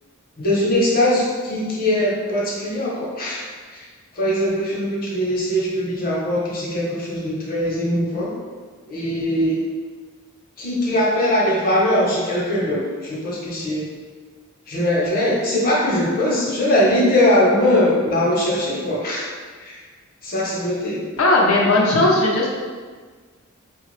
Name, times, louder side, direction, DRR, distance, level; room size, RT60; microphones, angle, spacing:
voice 1, 0.4-3.5 3.7-3.9 4.1-8.3 8.9-9.6 10.6-13.9 14.7-19.3 19.6-19.8 20.2-21.0, left 1 dB, 45° left, -5 dB, 1.0 m, -21 dB
voice 2, 21.2-22.5, left 2 dB, 75° left, -3 dB, 0.8 m, -16 dB
4.6 x 2.4 x 3.2 m, 1.5 s
head